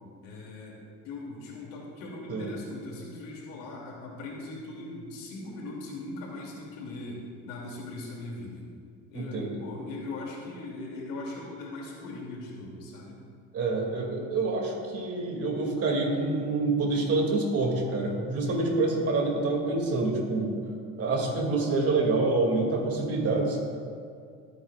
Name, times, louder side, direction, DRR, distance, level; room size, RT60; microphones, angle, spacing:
voice 1, 0.2-0.8 1.0-8.7 9.1-13.2 21.2-21.5, left 2 dB, 85° left, -2 dB, 2.9 m, -40 dB
voice 2, 9.1-9.6 13.5-20.5 21.0-23.6, right 3 dB, 45° right, 1 dB, 2.7 m, -27 dB
23.0 x 9.0 x 2.5 m, 2.3 s
cardioid pair, 105°, 32 cm